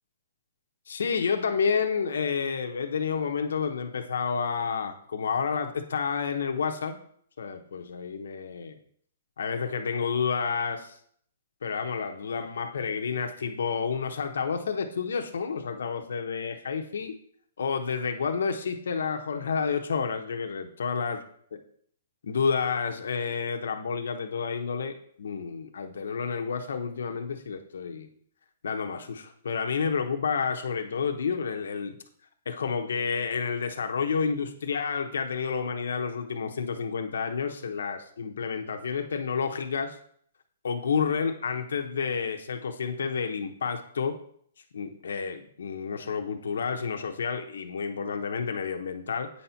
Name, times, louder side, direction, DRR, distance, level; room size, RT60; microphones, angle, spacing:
voice 1, 0.9-7.0 7.4-8.8 9.4-11.0 11.6-17.1 17.6-21.2 22.2-28.1 28.6-32.0 32.5-40.0 40.6-44.2 44.7-49.3, left 5 dB, 80° left, 5 dB, 0.9 m, -30 dB
8.5 x 4.2 x 5.7 m, 0.62 s
hypercardioid pair, 175°, 0 cm